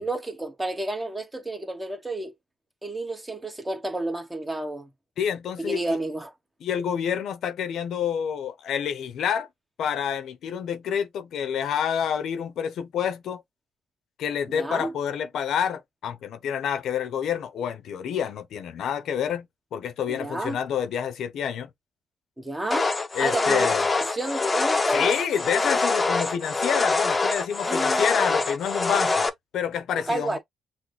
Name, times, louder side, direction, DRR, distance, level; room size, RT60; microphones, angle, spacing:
voice 1, 0.0-2.3 2.8-4.9 5.6-6.3 14.5-14.9 20.1-20.6 22.4-22.9 23.2-25.1 27.7-28.1 30.1-30.4, right 2 dB, 15° right, 1.1 m, -31 dB
voice 2, 5.2-6.0 6.6-9.5 9.8-13.4 14.2-21.7 23.1-23.8 24.9-29.3 29.5-30.4, left 8 dB, 75° left, 0.7 m, -28 dB
sound 1, 22.7-29.3, left 3 dB, 25° left, 0.7 m, -24 dB
6.0 x 2.2 x 3.2 m
cardioid pair, 90°, 0 cm